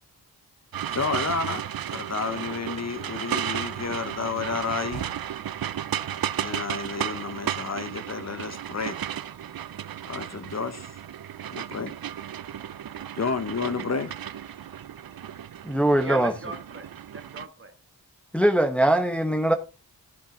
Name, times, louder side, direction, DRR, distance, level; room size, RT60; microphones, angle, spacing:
sound 1, 0.7-17.5, right 10 dB, 65° right, 0.6 m, -34 dB
voice 1, 0.9-5.1 6.4-9.0 10.1-11.0 11.5-11.9 13.1-14.1, left 4 dB, 45° left, 0.9 m, -31 dB
voice 2, 13.7-14.2 14.6-14.8 16.0-17.8, right 3 dB, 35° right, 1.9 m, -39 dB
voice 3, 15.6-16.3 18.3-19.6, right 1 dB, 5° left, 1.1 m, -21 dB
15.0 x 7.4 x 3.8 m
wide cardioid pair, 125°, 38 cm